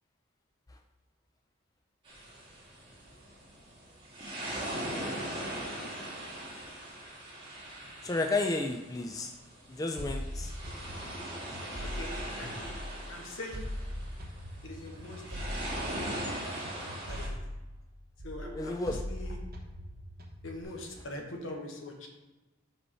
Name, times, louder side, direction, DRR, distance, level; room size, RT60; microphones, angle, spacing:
sound 1, 2.0-17.3, right 1 dB, 25° right, 1.8 m, -40 dB
voice 1, 8.0-9.3 9.7-10.5 18.6-19.0, left 2 dB, 15° left, 3 dB, 0.3 m, -32 dB
sound 2, 10.0-13.1 13.5-17.9 18.2-20.6, equal, 45° right, 1.0 m, -41 dB
voice 2, 11.8-12.7 13.0-13.6 14.6-17.4 18.2-19.4 20.4-22.1, left 1 dB, 70° left, 2 dB, 1.2 m, -44 dB
5.3 x 4.4 x 5.5 m, 1.1 s
head